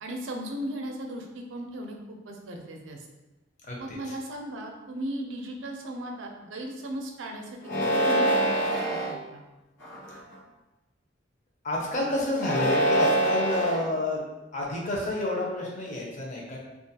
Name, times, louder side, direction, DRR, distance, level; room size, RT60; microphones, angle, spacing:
voice 1, 0.0-3.1 3.8-9.4, right 1 dB, 85° right, 2 dB, 0.4 m, -37 dB
voice 2, 3.6-4.1 11.6-14.2 14.5-16.6, left 1 dB, 40° left, -2 dB, 0.6 m, -29 dB
sound 1, 7.6-9.1 9.8-10.3 12.3-13.8, right 1 dB, 75° left, 0.9 m, -25 dB
2.4 x 2.2 x 2.7 m, 1.1 s
head